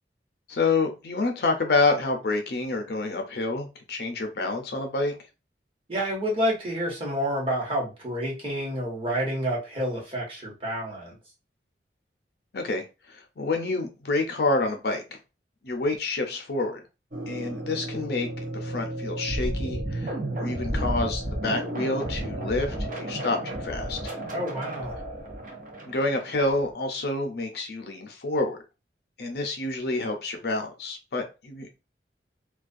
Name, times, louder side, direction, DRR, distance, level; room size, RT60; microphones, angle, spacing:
voice 1, 0.5-5.2 12.5-15.0 15.6-16.8 17.3-24.1 25.9-28.6 29.2-31.7, left 3 dB, 65° left, 4 dB, 0.5 m, -28 dB
voice 2, 5.9-11.1 24.3-24.9, equal, 30° right, -3 dB, 1.0 m, -29 dB
sound 1, 17.1-26.7, right 1 dB, 45° right, 0.6 m, -32 dB
2.3 x 2.2 x 2.5 m, 0.29 s
head